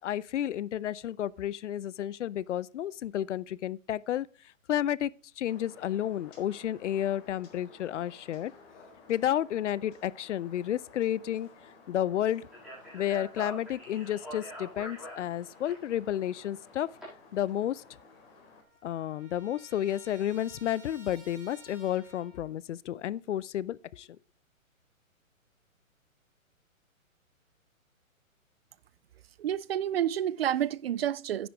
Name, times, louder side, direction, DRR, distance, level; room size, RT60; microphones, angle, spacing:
voice 1, 0.0-4.3 4.7-5.1 5.4-8.5 9.1-11.5 11.9-12.5 12.9-16.9 17.3-17.8 18.8-24.1, left 11 dB, 60° left, 0.6 m, -31 dB
sound 1, 5.5-18.6, left 4 dB, 45° left, 4.2 m, -55 dB
Speech, 12.5-17.0, equal, ahead, 6.1 m, -44 dB
Trumpet, 17.8-17.9 18.1-22.5, right 1 dB, 20° right, 3.5 m, -55 dB
voice 2, 29.4-31.5, right 10 dB, 50° right, 0.5 m, -29 dB
10.0 x 10.0 x 3.5 m
hypercardioid pair, 135°, 41 cm